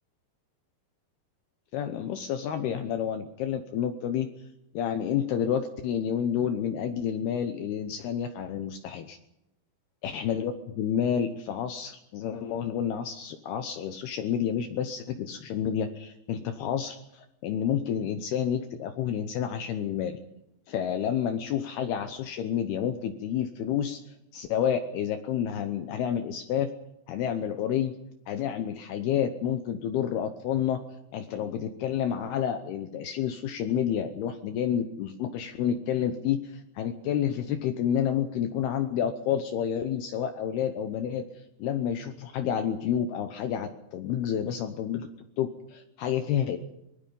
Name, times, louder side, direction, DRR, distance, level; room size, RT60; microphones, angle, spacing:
voice 1, 1.7-4.3 4.7-9.2 10.0-20.2 20.7-24.0 24.3-26.7 27.1-27.9 28.3-30.8 31.1-41.2 41.6-45.1 45.4-46.6, left 9 dB, 75° left, 8 dB, 2.6 m, -29 dB
25.0 x 19.5 x 5.4 m, 0.85 s
omnidirectional pair, 5.2 m